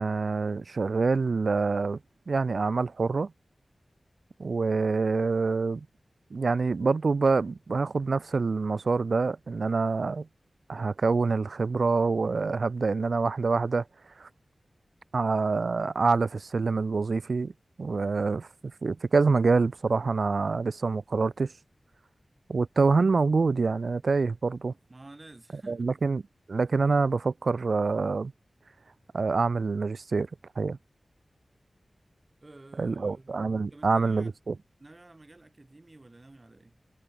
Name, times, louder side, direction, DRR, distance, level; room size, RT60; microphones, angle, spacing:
voice 1, 0.0-2.0 2.3-3.3 4.4-5.9 6.3-10.3 10.7-13.8 14.2-14.3 15.1-17.5 17.8-18.5 18.8-21.5 22.5-24.7 25.7-26.2 26.5-28.3 29.1-30.3 30.6-30.8 32.8-34.5, right 4 dB, 75° right, 0.3 m, -26 dB
voice 2, 24.9-25.9 32.4-34.4 34.8-36.7, right 2 dB, 35° right, 5.7 m, -51 dB
wide cardioid pair, 70°, 0 cm